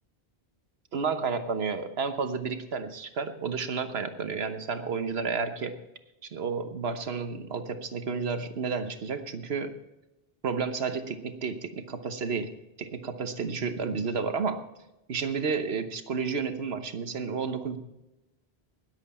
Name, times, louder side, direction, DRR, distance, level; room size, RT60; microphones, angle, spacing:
voice 1, 0.9-5.7 6.2-9.7 10.4-12.5 12.8-14.6 15.1-17.8, right 5 dB, 70° right, 8 dB, 1.3 m, -31 dB
20.5 x 8.0 x 4.3 m, 0.95 s
omnidirectional pair, 1.1 m